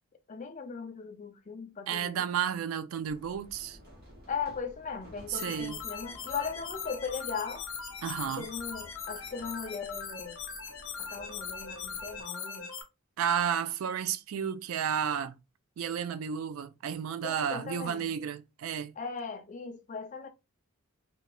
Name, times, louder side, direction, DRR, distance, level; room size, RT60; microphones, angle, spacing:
voice 1, 0.3-2.2 4.3-7.7 8.4-10.4 11.0-12.7 17.2-18.1 19.0-20.3, left 5 dB, 35° left, 0.4 m, -38 dB
voice 2, 1.9-3.8 5.3-5.8 8.0-8.5 13.2-15.3 15.8-18.9, right 8 dB, 70° right, 0.3 m, -32 dB
sound 1, 3.1-12.2, equal, 45° right, 0.9 m, -54 dB
sound 2, 5.3-12.8, left 6 dB, 70° left, 0.6 m, -40 dB
2.9 x 2.3 x 2.3 m
head